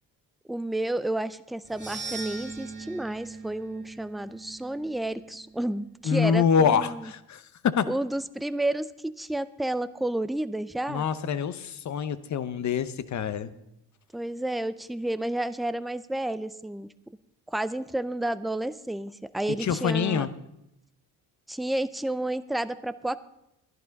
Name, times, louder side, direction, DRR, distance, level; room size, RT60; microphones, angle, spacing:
voice 1, 0.5-7.1 7.9-11.0 14.1-16.9 17.5-20.3 21.5-23.2, right 1 dB, ahead, 14 dB, 0.4 m, -31 dB
sound 1, 1.6-6.0, right 4 dB, 25° right, 2.5 m, -41 dB
voice 2, 6.0-7.9 10.9-13.5 19.6-20.3, left 7 dB, 45° left, 14 dB, 0.8 m, -26 dB
11.0 x 11.0 x 5.2 m, 0.84 s
supercardioid pair, 75°, 39 cm